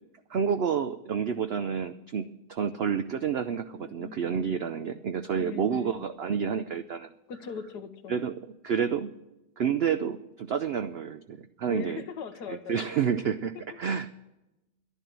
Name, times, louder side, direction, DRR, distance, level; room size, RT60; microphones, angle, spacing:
voice 1, 0.3-7.1 8.1-8.3 8.6-9.1 9.6-12.0 12.5-14.1, right 7 dB, 85° right, 10 dB, 0.5 m, -29 dB
voice 2, 3.7-4.8 5.4-6.0 7.3-8.2 11.7-12.8 13.5-14.0, left 6 dB, 80° left, 9 dB, 1.5 m, -41 dB
11.0 x 11.0 x 7.4 m, 0.95 s
omnidirectional pair, 1.7 m